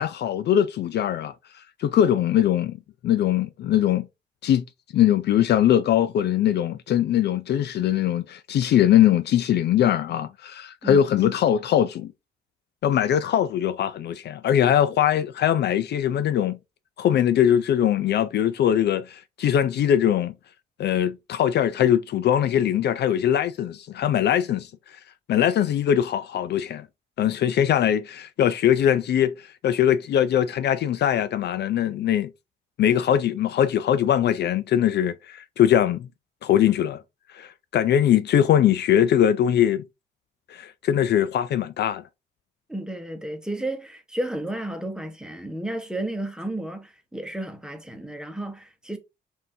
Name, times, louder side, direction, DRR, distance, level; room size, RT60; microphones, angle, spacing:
voice 1, 0.0-2.8 3.0-4.1 4.4-4.6 4.9-12.1 12.8-16.6 17.0-20.3 20.8-25.0 25.3-26.9 27.2-32.3 32.8-36.1 36.4-37.0 37.3-39.8 40.5-42.0, left 10 dB, 60° left, 0.4 m, -21 dB
voice 2, 42.7-49.0, right 1 dB, 5° right, 1.0 m, -32 dB
5.4 x 2.7 x 2.7 m
cardioid pair, 90°, 20 cm